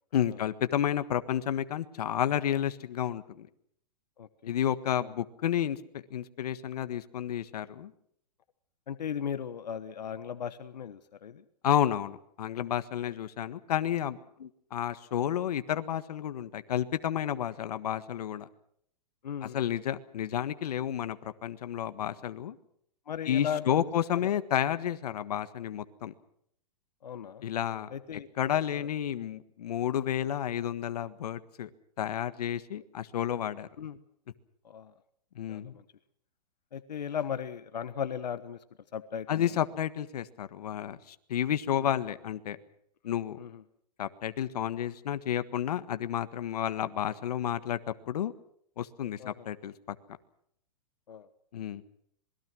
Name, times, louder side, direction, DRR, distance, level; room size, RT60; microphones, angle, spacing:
voice 1, 0.1-3.5 4.5-7.9 11.6-14.2 14.7-18.5 19.5-22.6 23.3-26.1 27.4-27.9 28.4-31.7 32.0-33.7 35.3-35.7 39.3-42.6 43.0-43.4 44.0-47.8 48.1-48.3 48.8-49.9 51.5-51.8, left 10 dB, 70° left, 12 dB, 1.6 m, -31 dB
voice 2, 4.2-4.5 5.0-5.1 8.9-11.4 13.0-13.1 14.4-14.5 19.2-19.6 23.1-23.9 24.2-24.3 27.0-27.4 27.9-28.3 28.8-28.9 33.8-34.0 34.6-34.9 35.5-35.8 36.7-38.6 38.9-39.4 41.8-41.9 43.4-43.6 49.2-49.4 51.1-51.3, left 8 dB, 85° left, 12 dB, 1.3 m, -37 dB
26.5 x 21.5 x 6.3 m, 0.69 s
hypercardioid pair, 150°, 21 cm